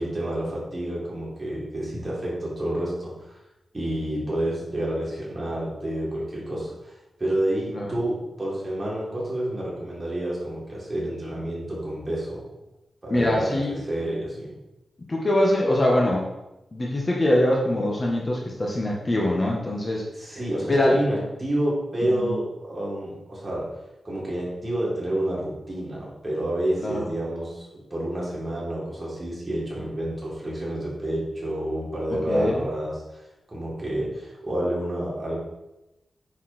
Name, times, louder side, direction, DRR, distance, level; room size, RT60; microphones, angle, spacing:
voice 1, 0.0-3.4 3.7-6.9 7.2-12.4 13.0-14.5 20.2-23.7 24.0-35.4, right 1 dB, 25° right, -5 dB, 3.8 m, -29 dB
voice 2, 13.1-13.8 15.1-16.3 16.7-20.0 20.7-21.0 22.1-22.4 26.8-27.1 32.1-32.6, left 1 dB, 30° left, -2 dB, 1.6 m, -23 dB
9.7 x 7.1 x 4.5 m, 0.96 s
wide cardioid pair, 130°, 0 cm